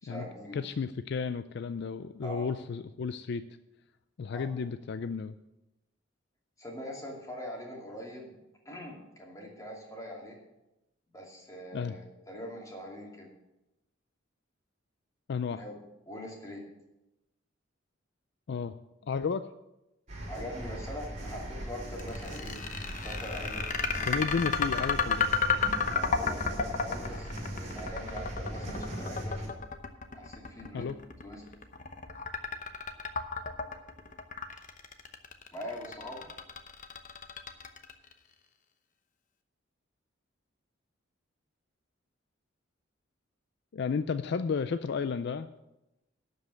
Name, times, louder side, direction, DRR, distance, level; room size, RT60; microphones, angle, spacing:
voice 1, 0.0-0.6 2.2-2.5 4.3-4.4 6.6-8.4 8.6-10.4 11.1-13.3 15.5-15.8 16.1-16.7 20.3-22.6 23.0-23.7 25.9-29.5 30.1-30.9 31.2-31.4 35.5-36.3, equal, 15° left, -1 dB, 2.5 m, -42 dB
voice 2, 0.5-3.4 4.2-5.3 11.7-11.9 15.3-15.6 18.5-18.8 19.0-19.4 24.0-25.3 30.7-31.0 43.7-45.5, left 5 dB, 60° left, 12 dB, 0.4 m, -32 dB
sound 1, 20.1-29.5, right 1 dB, 40° right, 2.8 m, -39 dB
sound 2, 22.0-38.1, left 5 dB, 40° left, 0.9 m, -32 dB
11.5 x 5.4 x 8.1 m, 0.95 s
head